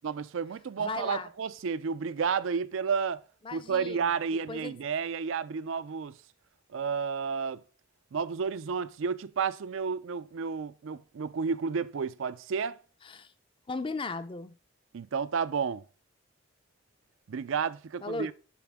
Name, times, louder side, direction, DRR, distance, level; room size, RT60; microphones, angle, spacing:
voice 1, 0.0-3.2 3.5-6.1 6.7-7.6 8.1-12.8 14.9-15.8 17.3-18.3, right 6 dB, 70° right, 0.4 m, -31 dB
voice 2, 0.8-1.3 3.4-4.8 13.0-13.3 13.7-14.6 18.0-18.3, left 3 dB, 25° left, 0.5 m, -37 dB
11.5 x 4.3 x 3.5 m
head